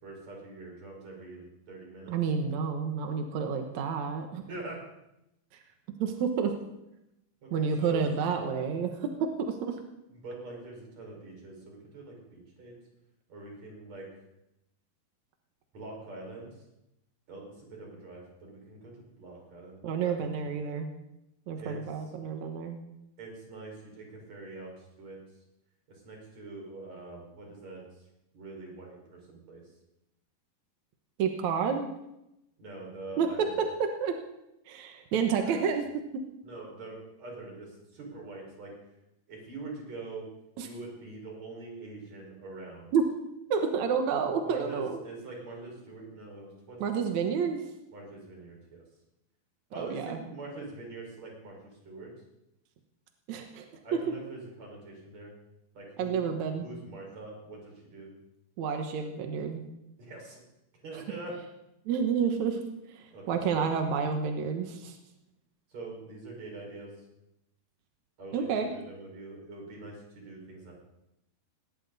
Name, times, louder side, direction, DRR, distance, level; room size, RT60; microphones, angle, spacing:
voice 1, 0.0-2.1 4.5-4.9 7.4-8.1 10.1-12.7 13.3-14.1 15.7-16.5 17.3-18.9 19.2-20.3 21.6-21.8 23.2-25.2 25.9-28.1 28.3-29.6 32.6-33.6 35.4-35.6 36.4-38.7 39.3-40.3 40.6-42.9 44.4-47.0 47.9-48.8 49.7-51.6 51.8-52.1 53.8-55.3 55.7-56.2 56.5-58.1 60.0-60.4 60.8-61.4 63.1-63.8 65.7-66.9 68.2-68.5 68.7-70.7, right 3 dB, 40° right, -1 dB, 6.3 m, -44 dB
voice 2, 2.1-4.4 6.0-6.5 7.5-9.1 9.4-9.8 19.8-20.9 21.5-22.8 31.2-31.9 33.2-33.3 33.8-34.1 34.7-35.9 40.6-40.7 42.9-43.0 43.5-45.0 46.8-47.6 49.8-50.2 53.3-53.7 56.0-56.7 58.6-59.6 61.9-62.6 62.9-65.0 68.3-68.7, right 6 dB, 65° right, 4 dB, 1.9 m, -29 dB
19.5 x 18.0 x 4.1 m, 0.88 s
omnidirectional pair, 4.8 m